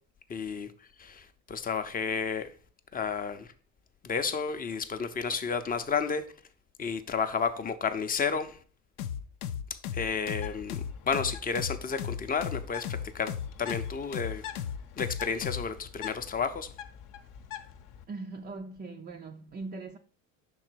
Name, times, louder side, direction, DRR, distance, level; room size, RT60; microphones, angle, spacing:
voice 1, 0.3-0.7 1.0-2.5 2.9-3.5 4.0-6.2 6.8-8.6 9.9-13.3 13.6-14.4 15.0-16.7, left 5 dB, 20° left, 0.6 m, -31 dB
sound 1, 9.0-15.7, left 9 dB, 90° left, 0.6 m, -35 dB
Bird, 10.2-18.0, left 10 dB, 50° left, 0.8 m, -46 dB
voice 2, 18.1-20.0, right 3 dB, 20° right, 0.4 m, -40 dB
5.8 x 3.9 x 4.5 m
hypercardioid pair, 80°, 41 cm